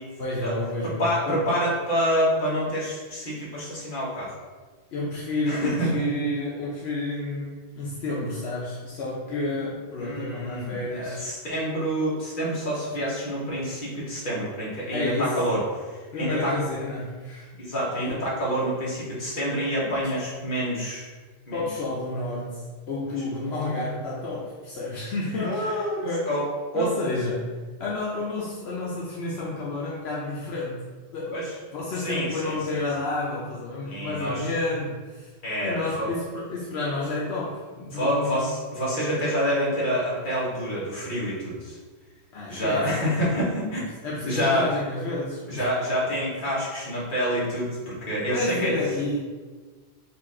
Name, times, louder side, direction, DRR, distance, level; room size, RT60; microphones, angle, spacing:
voice 1, 0.2-1.4 4.9-11.2 14.9-15.3 16.1-17.5 18.1-18.2 19.8-19.9 21.5-26.3 26.7-27.5 27.8-30.8 31.1-31.4 31.7-35.3 35.6-38.4 42.3-42.9 43.7-45.7 48.3-49.2, left 2 dB, 80° left, -6 dB, 1.0 m, -30 dB
voice 2, 0.8-4.3 5.5-5.9 10.0-16.5 17.6-21.1 21.5-21.6 25.4-26.5 26.7-26.9 31.3-31.5 32.0-32.8 33.8-34.5 35.4-36.1 37.9-41.8 42.5-43.8 44.2-44.7 45.5-48.7, equal, 55° left, -6 dB, 1.3 m, -27 dB
4.4 x 2.4 x 4.2 m, 1.4 s
omnidirectional pair, 1.1 m